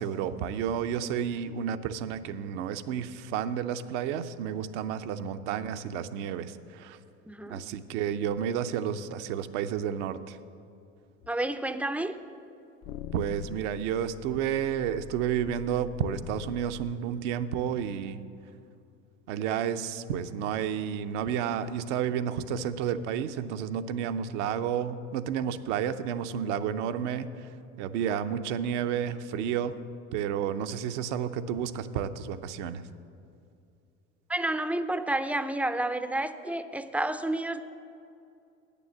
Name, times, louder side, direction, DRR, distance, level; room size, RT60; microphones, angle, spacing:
voice 1, 0.0-7.0 7.5-10.4 13.1-18.2 19.3-27.5 27.8-29.8 30.1-32.9, right 8 dB, 70° right, 10 dB, 0.6 m, -31 dB
voice 2, 7.3-7.7 11.3-12.1 34.3-37.6, right 1 dB, 5° right, 10 dB, 0.4 m, -30 dB
sound 1, 11.2-11.3 12.8-16.9, left 10 dB, 60° left, 0.5 m, -45 dB
8.9 x 6.9 x 7.2 m, 2.5 s
hypercardioid pair, 75°, 38 cm